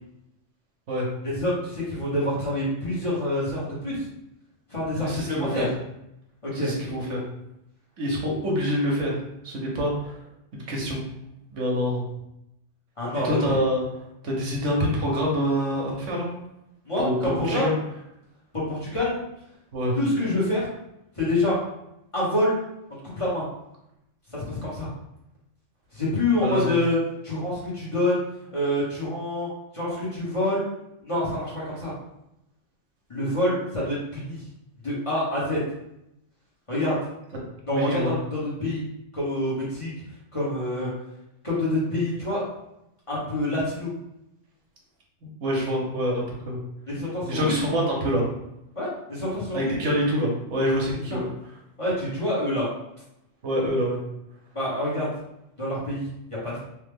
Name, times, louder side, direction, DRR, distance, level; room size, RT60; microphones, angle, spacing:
voice 1, 1.2-4.1 4.7-5.7 6.4-6.7 13.0-13.5 16.9-17.7 18.5-19.1 20.0-20.7 21.2-21.6 22.1-22.6 23.2-23.4 24.3-24.9 25.9-27.0 27.2-28.2 28.5-29.5 29.7-30.6 31.0-31.9 33.1-34.4 34.8-35.6 36.7-37.0 37.7-38.8 39.1-39.9 40.3-40.9 41.4-42.4 43.1-43.9 46.9-47.5 48.7-49.7 51.1-51.2 51.8-52.7 54.5-55.1 55.6-56.1 56.4-56.6, left 1 dB, 30° left, -8 dB, 1.0 m, -26 dB
voice 2, 5.0-5.7 6.5-7.2 8.0-9.1 9.4-10.2 10.5-11.0 11.5-12.1 13.2-13.8 14.2-16.3 17.0-17.8 19.7-20.0 26.4-26.7 37.7-38.1 45.4-46.6 47.3-48.2 49.5-51.3 53.4-54.0, equal, 80° right, -2 dB, 1.2 m, -26 dB
3.2 x 2.1 x 3.4 m, 0.84 s
omnidirectional pair, 1.3 m